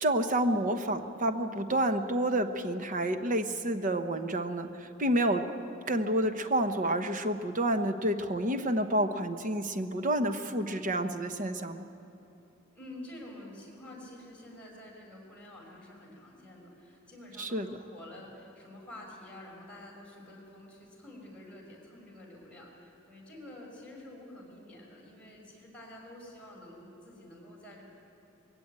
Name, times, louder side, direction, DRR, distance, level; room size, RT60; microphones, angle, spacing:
voice 1, 0.0-5.5 5.9-11.8 17.4-17.8, right 1 dB, 40° right, 8 dB, 1.0 m, -29 dB
voice 2, 12.7-27.8, left 1 dB, 5° left, -2 dB, 5.7 m, -49 dB
21.0 x 16.5 x 9.1 m, 3.0 s
head